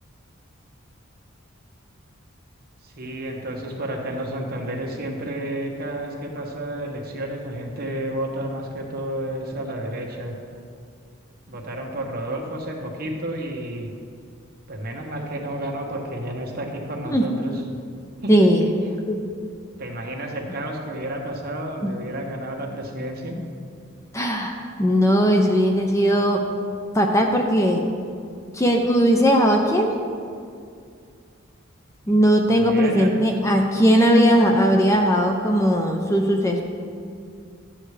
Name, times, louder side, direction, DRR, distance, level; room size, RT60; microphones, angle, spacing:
voice 1, 2.8-10.3 11.5-13.9 14.7-17.6 18.2-18.5 19.8-23.4 32.0-32.1 32.5-33.2, right 1 dB, 45° right, 0 dB, 1.3 m, -31 dB
voice 2, 18.3-18.7 19.1-19.2 21.8-21.9 24.1-26.4 26.9-27.8 28.5-30.0 32.1-36.6, equal, 15° left, 2 dB, 0.5 m, -18 dB
12.5 x 8.8 x 3.3 m, 2.3 s
head